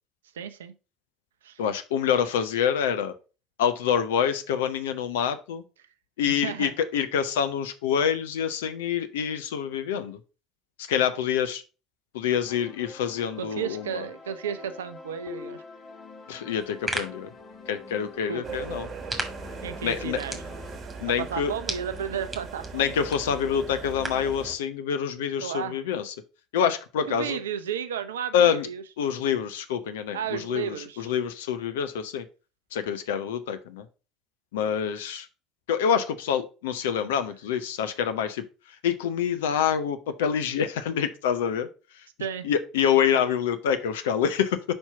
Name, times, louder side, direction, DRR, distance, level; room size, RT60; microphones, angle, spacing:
voice 1, 0.3-0.7 1.4-1.6 6.3-6.7 13.4-15.6 18.3-18.6 19.6-20.4 21.1-22.8 25.4-25.8 27.1-28.8 30.1-31.1 34.6-34.7 42.2-42.5, right 8 dB, 70° right, 11 dB, 0.6 m, -33 dB
voice 2, 1.6-3.1 3.6-5.6 6.2-10.2 10.8-11.6 12.1-14.0 16.3-17.3 17.7-18.9 19.8-20.2 21.0-21.5 22.7-26.1 26.5-27.4 28.3-28.7 29.0-32.2 32.7-33.8 34.5-35.3 35.7-38.4 38.8-41.7 42.4-44.7, left 8 dB, 65° left, 9 dB, 0.7 m, -26 dB
sound 1, 12.4-20.8, left 4 dB, 40° left, 1.4 m, -45 dB
sound 2, 16.5-24.3, right 2 dB, 15° right, 1.8 m, -39 dB
sound 3, 18.4-24.6, right 5 dB, 35° right, 1.2 m, -39 dB
5.3 x 4.4 x 5.6 m, 0.33 s
figure-of-eight pair, 60°, 0 cm